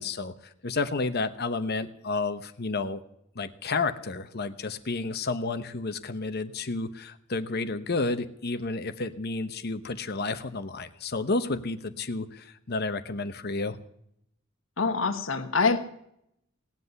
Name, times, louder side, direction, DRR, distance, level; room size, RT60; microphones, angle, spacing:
voice 1, 0.0-3.0 3.3-13.8, left 3 dB, 50° left, 10 dB, 1.0 m, -31 dB
voice 2, 14.8-15.8, left 4 dB, 70° left, 8 dB, 1.3 m, -25 dB
18.5 x 8.1 x 9.6 m, 0.75 s
head